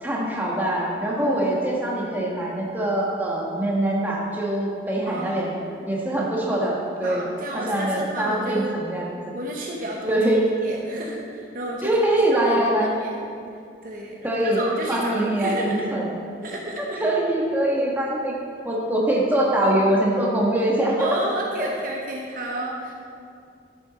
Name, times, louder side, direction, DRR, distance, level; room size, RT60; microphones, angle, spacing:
voice 1, 0.0-5.5 5.9-7.2 7.5-9.1 10.1-10.4 11.8-12.9 14.2-14.6 14.9-16.1 17.0-18.3 18.6-21.2, right 1 dB, 10° right, -4 dB, 1.4 m, -23 dB
voice 2, 1.2-1.6 5.1-5.5 7.0-8.7 9.3-10.2 10.6-11.9 12.3-13.2 13.8-15.8 16.4-17.0 21.0-22.9, right 1 dB, 50° right, -1 dB, 0.9 m, -32 dB
12.0 x 6.9 x 4.1 m, 2.4 s
head